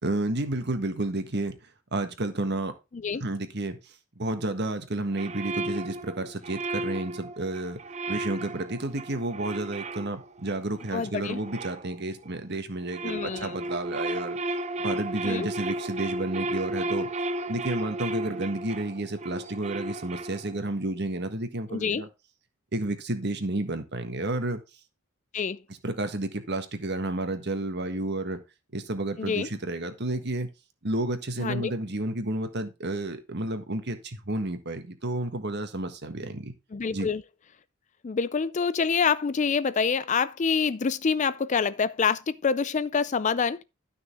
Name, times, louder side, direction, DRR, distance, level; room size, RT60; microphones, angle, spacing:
voice 1, 0.0-1.6 1.9-2.7 3.2-7.8 8.1-14.4 14.8-17.1 17.5-22.1 22.7-24.6 25.8-28.4 28.7-30.5 30.8-36.5 36.9-37.1, right 2 dB, 50° right, 1.6 m, -31 dB
sound 1, 5.1-12.4 12.7-20.7, right 1 dB, 35° right, 0.7 m, -34 dB
voice 2, 10.9-11.4 13.0-13.5 15.2-15.5 21.7-22.0 25.3-25.6 29.2-29.5 31.4-31.7 36.7-37.2 38.0-43.6, left 5 dB, 35° left, 0.4 m, -26 dB
12.5 x 6.1 x 3.5 m
head